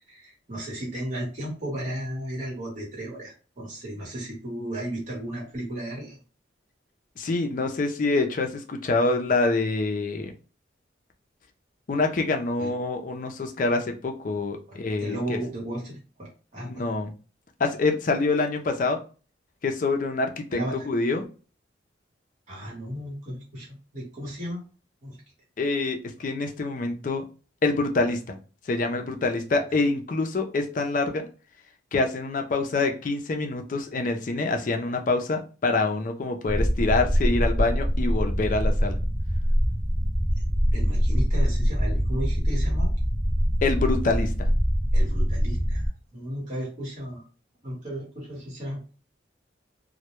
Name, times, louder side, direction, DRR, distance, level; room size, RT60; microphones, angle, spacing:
voice 1, 0.1-6.2 12.6-12.7 14.7-16.8 20.5-20.9 22.5-24.6 25.0-25.2 40.7-42.9 44.9-47.2 47.6-48.8, right 1 dB, 40° right, -3 dB, 1.0 m, -34 dB
voice 2, 7.2-10.3 11.9-15.4 16.6-17.1 17.6-19.0 19.6-21.3 25.6-27.2 27.6-28.4 28.7-31.3 31.9-39.0 43.6-44.5, left 3 dB, 45° left, 4 dB, 0.4 m, -26 dB
sound 1, 36.5-45.9, equal, 10° right, 0.8 m, -24 dB
2.1 x 2.1 x 2.9 m, 0.36 s
head